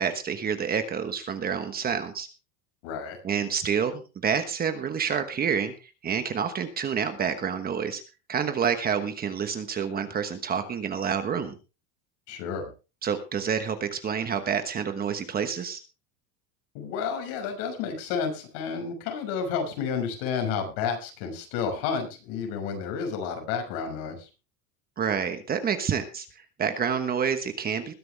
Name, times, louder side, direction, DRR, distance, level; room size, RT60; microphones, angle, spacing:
voice 1, 0.0-2.3 3.2-8.0 8.3-11.5 13.0-15.8 25.0-27.9, right 7 dB, 20° right, 8 dB, 1.2 m, -28 dB
voice 2, 2.8-3.2 12.3-12.7 16.7-24.3, left 6 dB, 65° left, 4 dB, 6.2 m, -31 dB
20.5 x 10.5 x 3.4 m, 0.32 s
cardioid pair, 170°, 41 cm